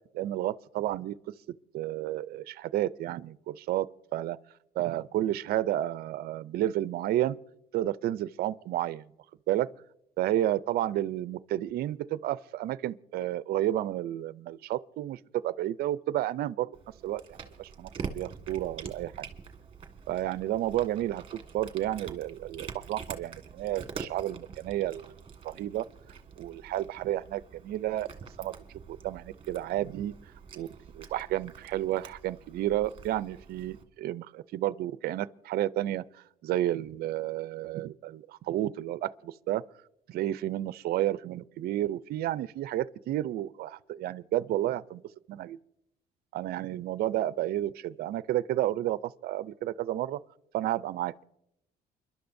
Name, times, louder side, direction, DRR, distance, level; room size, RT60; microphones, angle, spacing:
voice 1, 0.1-1.2 1.7-3.9 4.1-4.4 4.8-7.4 7.7-9.0 9.5-9.7 10.2-16.7 17.0-17.9 18.1-19.1 20.1-21.2 21.5-25.1 25.4-25.9 26.4-28.1 28.4-28.5 28.9-30.1 30.5-30.7 30.9-39.6 40.1-45.0 45.3-45.6 46.3-50.2 50.5-51.2, right 13 dB, 65° right, 0.5 m, -31 dB
Cat, 16.7-33.8, right 6 dB, 35° right, 1.6 m, -45 dB
29.0 x 11.5 x 2.6 m
cardioid pair, 110°, 17 cm